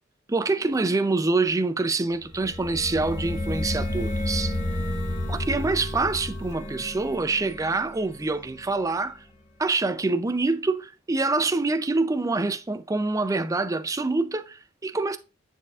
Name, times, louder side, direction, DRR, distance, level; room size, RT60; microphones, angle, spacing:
voice 1, 0.3-4.5 5.3-9.2 9.6-15.2, right 3 dB, 15° right, 0.4 m, -26 dB
sound 1, 2.2-8.9, left 1 dB, 35° left, 1.2 m, -31 dB
9.7 x 4.2 x 2.4 m
head